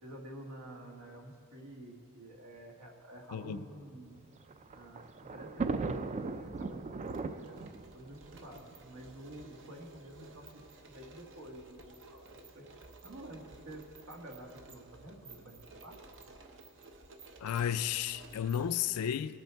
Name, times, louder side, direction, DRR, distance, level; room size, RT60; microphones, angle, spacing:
voice 1, 0.0-4.2 4.7-7.6 7.9-12.7 13.0-16.0, right 1 dB, 80° right, 1.7 m, -49 dB
sound 1, 3.0-3.3 4.3-5.1 5.3-5.4 5.9-18.8, right 3 dB, 60° right, 0.8 m, -55 dB
voice 2, 3.3-3.6 17.4-19.4, left 9 dB, 80° left, 0.4 m, -33 dB
Thunder, 4.1-9.5 10.3-10.4 10.6-10.7 11.8-12.1, right 4 dB, 30° right, 0.3 m, -39 dB
19.0 x 6.8 x 4.6 m
head